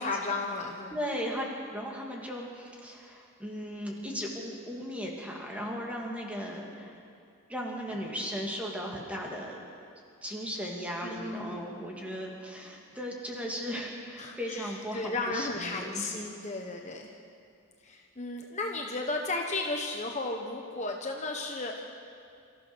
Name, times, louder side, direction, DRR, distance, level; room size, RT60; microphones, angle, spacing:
voice 1, 0.0-1.0 11.0-11.7 14.2-17.1 17.8-21.8, left 2 dB, 35° left, 2 dB, 1.2 m, -34 dB
voice 2, 0.9-7.0 7.5-9.6 10.2-16.0, equal, 5° right, -2 dB, 2.7 m, -37 dB
28.5 x 14.5 x 6.4 m, 2.4 s
head